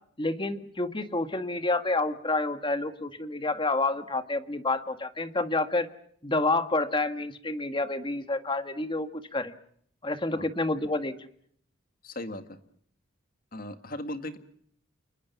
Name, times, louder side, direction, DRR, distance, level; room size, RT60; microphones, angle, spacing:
voice 1, 0.2-5.9 6.2-9.5 10.0-11.3, left 2 dB, 25° left, 10 dB, 1.7 m, -29 dB
voice 2, 12.0-12.6 13.5-14.4, left 1 dB, 45° left, 9 dB, 2.1 m, -37 dB
29.5 x 20.5 x 7.1 m, 0.65 s
head